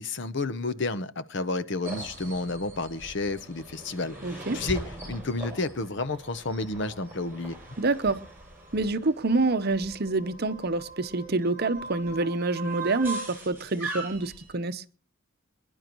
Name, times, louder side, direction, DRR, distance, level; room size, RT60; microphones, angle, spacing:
voice 1, 0.0-7.6, left 3 dB, 55° left, 0.8 m, -31 dB
sound 1, 1.9-14.5, right 2 dB, 10° right, 6.7 m, -40 dB
voice 2, 4.2-4.6 7.8-8.3 8.7-14.8, right 3 dB, 50° right, 0.8 m, -27 dB
26.0 x 11.0 x 3.0 m
head